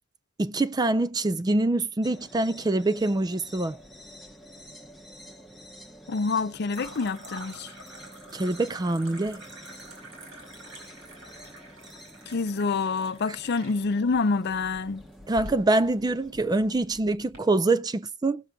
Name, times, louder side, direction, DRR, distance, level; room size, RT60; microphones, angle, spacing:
voice 1, 0.4-3.8 8.3-9.4 15.3-18.4, right 2 dB, 20° right, 0.4 m, -25 dB
sound 1, 2.0-17.1, equal, ahead, 1.1 m, -49 dB
sound 2, 3.5-4.3 4.6-5.2 6.7-17.4, right 1 dB, 75° right, 5.3 m, -47 dB
voice 2, 6.1-7.7 12.3-15.0, left 4 dB, 55° left, 0.5 m, -27 dB
20.0 x 6.7 x 2.3 m
head